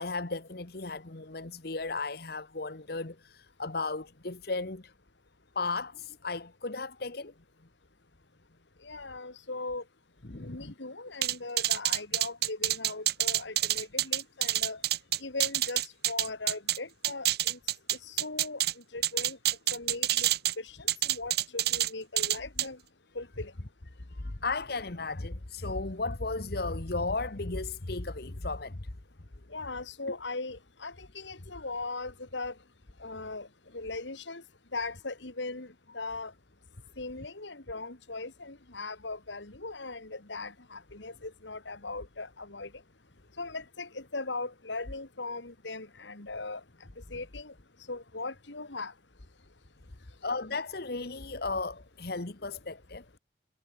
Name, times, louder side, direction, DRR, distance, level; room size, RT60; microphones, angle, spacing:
voice 1, 0.0-4.9 5.5-7.3 10.3-10.7 24.2-28.8 50.2-53.0, left 3 dB, 55° left, 1.4 m, -35 dB
voice 2, 8.8-9.8 10.4-14.8 15.2-15.8 16.1-17.6 18.1-18.6 18.9-19.4 19.7-20.3 20.6-22.8 23.1-23.5 29.5-32.5 33.0-33.5 33.7-34.4 34.7-36.3 37.0-42.7 43.4-46.6 47.1-47.5 47.9-48.9, left 3 dB, 75° left, 2.5 m, -39 dB
sound 1, 11.2-16.8 17.0-18.7 19.0-20.5 20.9-21.9 22.2-22.7, right 13 dB, 55° right, 1.8 m, -27 dB
head